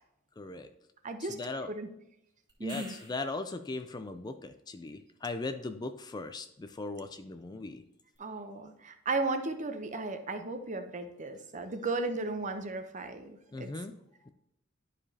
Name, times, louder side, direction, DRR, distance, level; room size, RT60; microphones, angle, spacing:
voice 1, 0.4-0.7 1.2-1.7 2.6-7.8 13.5-14.0 14.2-14.3, left 3 dB, 20° left, 9 dB, 0.3 m, -39 dB
voice 2, 1.0-1.4 1.7-1.9 2.6-2.9 8.2-13.7, right 3 dB, 35° right, 7 dB, 0.7 m, -35 dB
sound 1, 2.5-3.5 8.1-8.2, right 2 dB, 20° right, 1.6 m, -48 dB
11.0 x 4.9 x 2.8 m, 0.81 s
head